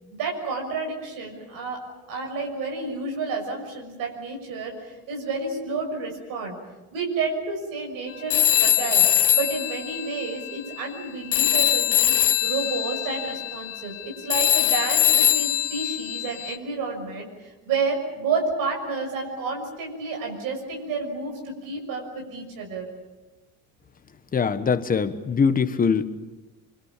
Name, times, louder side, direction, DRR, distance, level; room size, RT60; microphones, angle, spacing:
voice 1, 0.2-1.8 2.1-6.6 6.9-9.1 9.3-12.1 12.4-22.9, right 4 dB, 70° right, 1 dB, 6.4 m, -30 dB
Telephone, 8.3-11.0 11.3-16.6, left 11 dB, 40° left, 1.5 m, -22 dB
voice 2, 24.3-26.0, left 5 dB, 25° left, 10 dB, 1.3 m, -22 dB
25.0 x 25.0 x 7.4 m, 1.1 s
cardioid pair, 130°, 34 cm